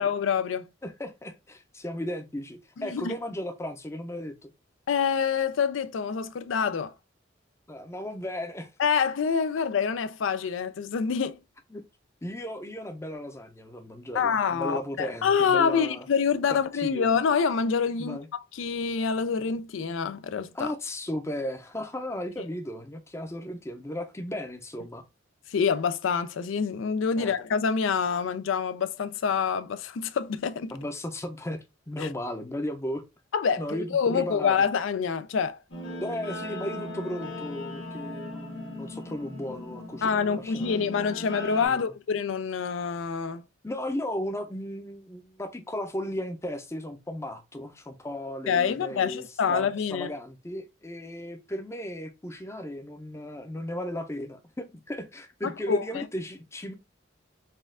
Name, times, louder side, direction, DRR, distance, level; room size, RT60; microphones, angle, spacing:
voice 1, 0.0-0.7 2.8-3.2 4.9-6.9 8.8-11.4 14.1-20.7 25.5-30.7 32.0-32.1 33.3-35.6 40.0-43.4 48.5-50.1 55.4-56.1, left 6 dB, 80° left, 0.4 m, -26 dB
voice 2, 0.8-4.5 7.7-8.7 11.7-11.8 12.2-16.1 16.8-17.2 18.0-18.3 20.5-25.0 27.2-27.3 30.7-31.6 31.9-33.0 33.6-34.5 36.0-40.8 41.6-41.9 43.6-56.7, left 1 dB, 15° left, 0.5 m, -35 dB
Guitar, 35.7-41.7, left 1 dB, 65° left, 1.5 m, -38 dB
4.2 x 2.4 x 3.6 m
head